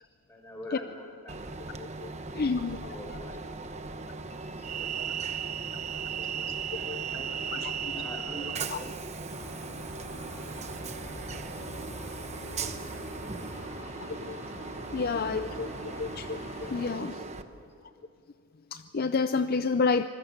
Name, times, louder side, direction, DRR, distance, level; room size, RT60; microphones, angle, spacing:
voice 1, 0.3-1.5 2.0-4.9 5.3-6.3 6.7-9.7 10.3-10.5 11.0-12.7 12.9-14.5 15.0-16.2 16.5-17.1 17.4-18.1, equal, 10° left, 2 dB, 4.5 m, -49 dB
Train, 1.3-17.4, right 5 dB, 30° right, 1.0 m, -37 dB
voice 2, 2.0-3.0 6.9-7.0 7.8-7.9 14.2-14.4 14.9-15.7 16.0-16.2 16.6-17.2 18.7-20.1, left 4 dB, 40° left, 11 dB, 0.5 m, -29 dB
sound 1, 9.3-16.9, left 1 dB, 65° left, 2.8 m, -44 dB
25.5 x 20.5 x 7.3 m, 2.5 s
head